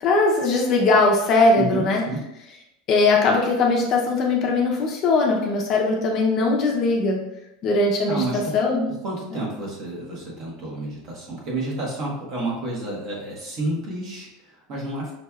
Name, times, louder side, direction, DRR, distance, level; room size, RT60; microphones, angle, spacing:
voice 1, 0.0-2.0 2.9-7.2 7.6-8.8, left 3 dB, 35° left, 0 dB, 0.6 m, -20 dB
voice 2, 1.5-2.2 8.1-8.6 8.9-15.1, right 2 dB, 35° right, -3 dB, 1.2 m, -30 dB
5.6 x 3.1 x 2.3 m, 0.87 s
supercardioid pair, 165°, 0 cm